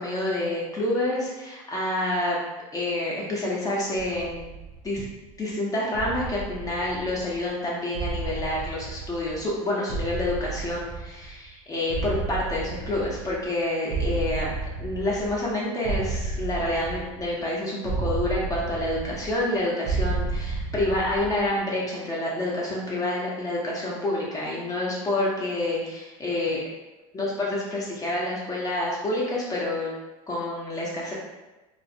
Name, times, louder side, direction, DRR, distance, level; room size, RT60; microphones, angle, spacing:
voice 1, 0.0-2.4 2.7-4.4 4.8-5.0 5.4-14.5 14.8-26.6 27.1-29.9 30.3-31.1, left 1 dB, 20° left, -5 dB, 0.7 m, -28 dB
sound 1, 3.9-5.3 5.9-7.5 7.9-9.6 9.9-11.5 11.9-13.6 13.9-15.5 15.8-17.4 17.8-19.5 19.8-21.5, right 4 dB, 55° right, 0.5 m, -32 dB
2.4 x 2.0 x 2.6 m, 1.1 s
hypercardioid pair, 100°, 17 cm